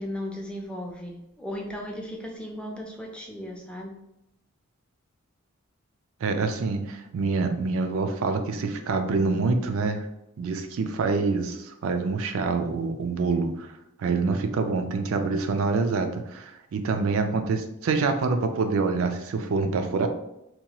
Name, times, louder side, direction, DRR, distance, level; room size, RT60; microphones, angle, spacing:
voice 1, 0.0-3.9, left 1 dB, 5° left, 0 dB, 0.4 m, -36 dB
voice 2, 6.2-10.1 10.4-13.7 14.0-20.1, right 4 dB, 70° right, 6 dB, 0.4 m, -26 dB
2.8 x 2.2 x 2.8 m, 0.87 s
head